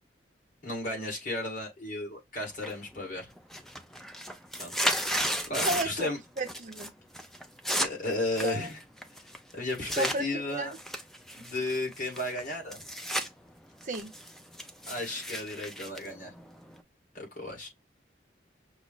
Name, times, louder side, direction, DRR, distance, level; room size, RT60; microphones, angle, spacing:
voice 1, 0.6-3.3 4.6-6.2 7.8-8.8 9.5-10.7 11.4-12.8 14.9-16.3 17.1-17.7, left 2 dB, 45° left, 2.0 m, -34 dB
sound 1, 2.6-3.0 3.4-6.1 6.4-6.9 7.1-10.2 10.7-13.3 13.6-16.8, equal, ahead, 0.4 m, -34 dB
voice 2, 5.6-6.1 6.4-6.9 8.4-8.7 10.0-10.7 13.8-14.1, right 2 dB, 45° right, 0.6 m, -32 dB
5.9 x 2.0 x 3.8 m
head